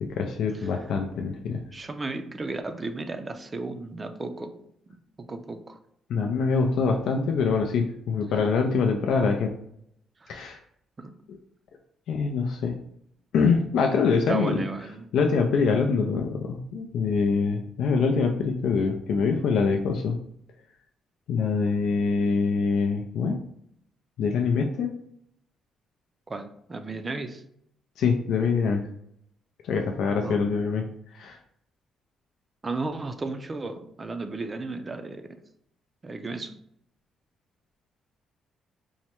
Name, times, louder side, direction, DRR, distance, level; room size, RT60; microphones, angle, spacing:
voice 1, 0.0-1.6 6.1-9.5 10.3-10.6 11.3-11.4 12.1-12.8 13.3-14.6 15.1-20.2 21.3-23.4 24.2-24.9 28.0-28.9 29.6-30.8 31.1-31.4, left 5 dB, 75° left, 2 dB, 0.4 m, -24 dB
voice 2, 1.7-4.6 4.9-5.8 10.2-10.5 11.0-11.1 14.3-15.1 26.3-27.4 30.2-30.4 32.6-35.3 36.0-36.6, right 3 dB, 30° right, 8 dB, 0.4 m, -34 dB
4.5 x 2.1 x 2.9 m, 0.73 s
cardioid pair, 90°, 0 cm